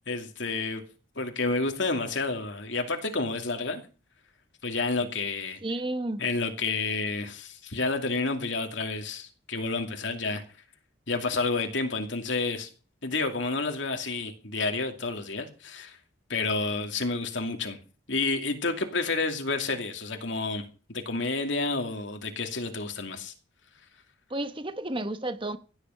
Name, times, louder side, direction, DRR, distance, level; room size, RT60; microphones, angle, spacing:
voice 1, 0.1-0.8 1.2-3.8 4.6-5.6 6.2-10.4 11.1-12.7 13.0-16.0 16.3-17.8 18.1-20.6 20.9-23.3, left 3 dB, 70° left, 2.5 m, -30 dB
voice 2, 5.6-6.2 24.3-25.6, right 1 dB, 25° right, 1.0 m, -31 dB
16.5 x 10.5 x 5.7 m
head